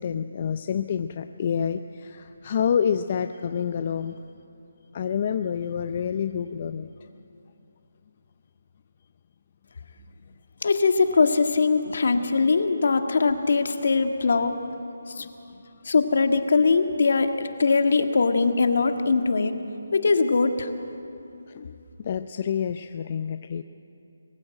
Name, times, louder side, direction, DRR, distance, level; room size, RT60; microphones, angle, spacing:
voice 1, 0.0-4.2 4.9-7.1 15.1-15.2 21.5-23.6, left 7 dB, 35° left, 10 dB, 0.5 m, -28 dB
voice 2, 10.6-14.5 15.2-15.3 15.8-19.5 19.9-20.7, left 4 dB, 60° left, 6 dB, 1.7 m, -21 dB
22.5 x 15.5 x 9.0 m, 2.7 s
hypercardioid pair, 165°, 0 cm